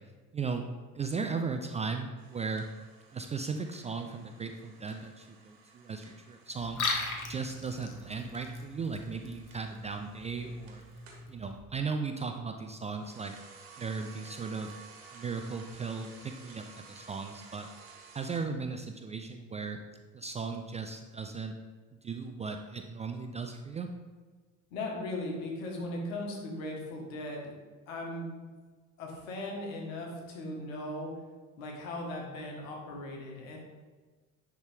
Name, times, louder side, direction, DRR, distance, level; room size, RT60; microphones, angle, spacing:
voice 1, 0.3-0.7 0.9-2.7 3.1-6.8 7.3-10.8 11.3-13.4 13.8-14.8 15.1-17.7 18.1-19.8 20.1-21.5 22.0-23.9, right 4 dB, 20° right, 5 dB, 0.3 m, -36 dB
sound 1, 2.2-11.3 12.8-18.4, right 4 dB, 65° right, 1.4 m, -55 dB
Liquid, 6.6-11.6, left 3 dB, 50° left, 1.2 m, -39 dB
voice 2, 24.7-27.5 27.9-28.3 29.0-31.2 31.6-33.6, left 1 dB, 70° left, 0 dB, 1.5 m, -38 dB
9.9 x 3.6 x 3.4 m, 1.4 s
figure-of-eight pair, 60°, 41 cm